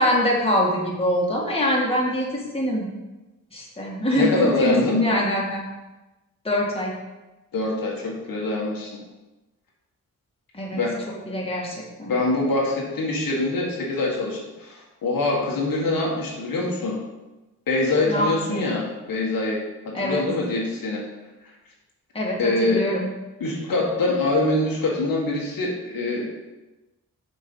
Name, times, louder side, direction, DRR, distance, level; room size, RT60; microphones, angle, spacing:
voice 1, 0.0-2.9 3.5-5.7 6.4-6.9 10.5-10.8 11.3-12.1 18.1-18.6 19.9-20.2 22.1-23.1, equal, 15° left, -4 dB, 2.1 m, -24 dB
voice 2, 4.1-5.0 7.5-9.0 10.7-11.0 12.1-17.0 17.7-21.0 22.4-22.9 23.4-26.3, left 2 dB, 80° left, -2 dB, 1.7 m, -24 dB
6.6 x 4.6 x 5.6 m, 1.1 s
cardioid pair, 80°, 34 cm